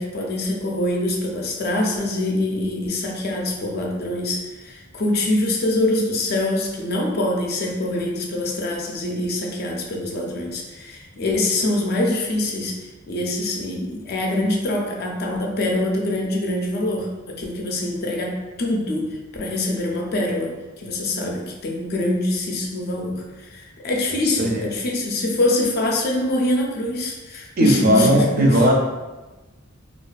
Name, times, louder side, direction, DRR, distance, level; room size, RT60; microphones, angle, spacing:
voice 1, 0.0-12.8 13.1-28.6, left 1 dB, 50° left, 0 dB, 0.4 m, -24 dB
voice 2, 27.6-28.7, equal, 45° right, -1 dB, 0.4 m, -17 dB
2.3 x 2.2 x 2.4 m, 1.2 s
head